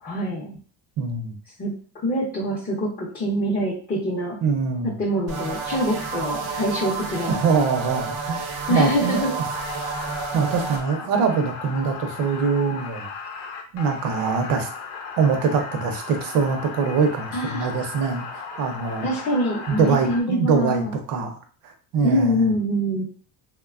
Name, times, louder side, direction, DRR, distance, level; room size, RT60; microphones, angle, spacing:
voice 1, 0.0-0.5 1.6-4.4 4.8-7.3 8.7-9.3 17.3-17.7 19.0-21.0 22.0-23.0, equal, 20° left, -5 dB, 0.5 m, -25 dB
voice 2, 1.0-1.4 4.4-4.9 7.3-9.5 10.3-13.1 13.7-14.7 15.2-19.1 19.7-21.4 21.6-22.5, right 5 dB, 55° right, 5 dB, 0.6 m, -23 dB
sound 1, 5.3-10.8, right 4 dB, 80° right, 0.9 m, -30 dB
sound 2, 9.5-20.2, left 5 dB, 70° left, 0.7 m, -36 dB
3.0 x 2.2 x 2.3 m, 0.43 s
cardioid pair, 150°, 43 cm